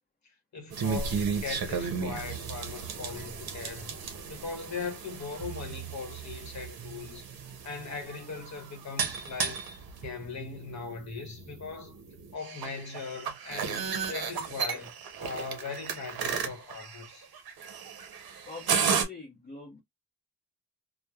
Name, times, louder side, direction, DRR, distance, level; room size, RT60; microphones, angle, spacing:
voice 1, 0.5-3.9 4.3-7.3 7.6-9.6 10.0-11.9 12.3-14.9 15.2-17.3, left 4 dB, 40° left, 1.0 m, -39 dB
sound 1, 0.7-19.0, right 6 dB, 60° right, 0.7 m, -34 dB
voice 2, 18.5-19.8, left 3 dB, 25° left, 0.7 m, -44 dB
3.0 x 2.1 x 2.2 m
wide cardioid pair, 175°, 41 cm